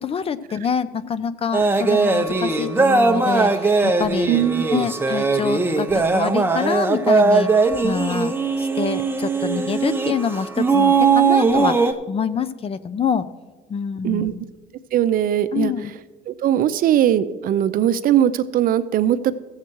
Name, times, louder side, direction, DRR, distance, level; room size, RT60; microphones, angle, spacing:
voice 1, 0.0-4.3 4.7-13.3 13.7-14.4 15.5-15.9, left 7 dB, 35° left, 15 dB, 0.5 m, -26 dB
sound 1, 1.5-11.9, right 4 dB, 15° right, 0.7 m, -19 dB
voice 2, 4.3-4.8 14.0-14.3 14.9-15.7 16.3-19.4, right 11 dB, 55° right, 12 dB, 0.5 m, -20 dB
15.0 x 7.3 x 4.5 m, 1.3 s
cardioid pair, 110°, 17 cm